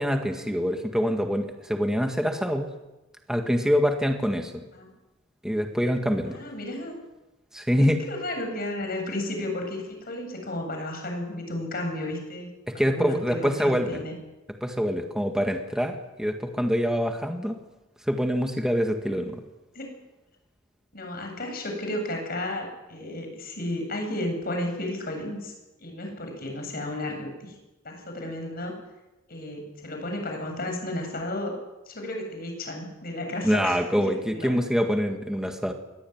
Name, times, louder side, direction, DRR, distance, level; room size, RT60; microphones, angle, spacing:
voice 1, 0.0-2.7 3.3-4.6 5.4-6.4 7.5-8.0 12.7-14.0 14.6-17.6 18.1-19.4 33.4-35.7, equal, 5° right, 4 dB, 1.9 m, -25 dB
voice 2, 6.3-7.0 7.8-14.1 19.0-19.3 19.7-20.0 20.9-25.5 25.8-27.6 27.8-28.7 29.3-31.5 31.9-33.8 34.3-34.5, left 1 dB, 50° left, 3 dB, 7.9 m, -33 dB
23.0 x 18.5 x 9.6 m, 1.0 s
head